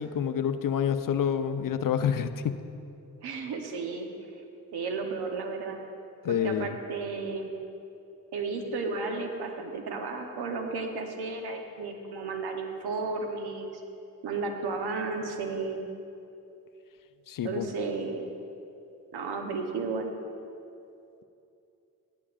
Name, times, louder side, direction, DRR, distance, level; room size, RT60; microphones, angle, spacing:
voice 1, 0.0-2.6 6.2-6.7 17.3-17.7, left 8 dB, 60° left, 11 dB, 0.6 m, -28 dB
voice 2, 3.2-4.1 4.7-5.8 6.3-7.5 8.3-13.7 14.2-15.9 17.4-18.3 19.1-20.1, right 4 dB, 80° right, 4 dB, 1.1 m, -33 dB
14.5 x 11.0 x 2.6 m, 2.7 s
supercardioid pair, 50°, 38 cm